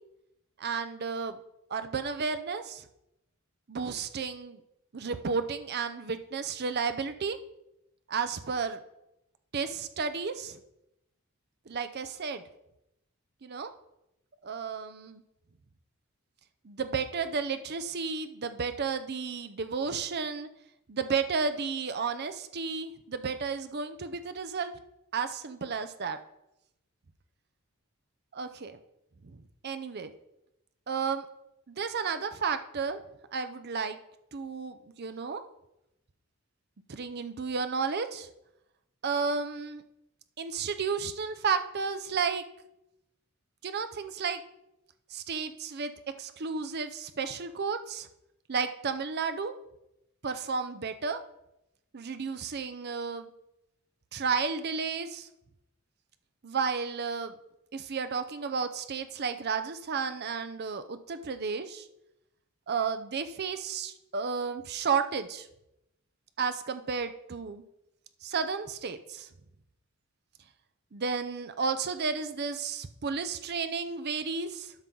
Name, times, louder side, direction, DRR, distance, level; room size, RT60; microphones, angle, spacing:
voice 1, 0.6-1.4 1.7-2.8 3.7-4.6 4.9-7.4 8.1-8.8 9.5-10.6 11.7-12.4 13.4-13.7 14.4-15.2 16.6-20.5 20.9-24.7 25.1-26.2 28.3-28.8 29.2-30.1 30.9-31.2 31.7-33.0 33.3-34.0 34.3-35.4 36.9-38.3 39.0-39.8 40.4-42.4 43.6-44.4 45.1-45.9 46.2-48.1 48.5-49.5 50.2-51.2 51.9-53.3 54.1-55.3 56.4-57.3 57.7-61.9 62.7-65.5 66.4-67.6 68.2-69.3 70.9-74.7, right 5 dB, 50° right, 10 dB, 0.6 m, -32 dB
12.0 x 5.5 x 3.9 m, 0.85 s
head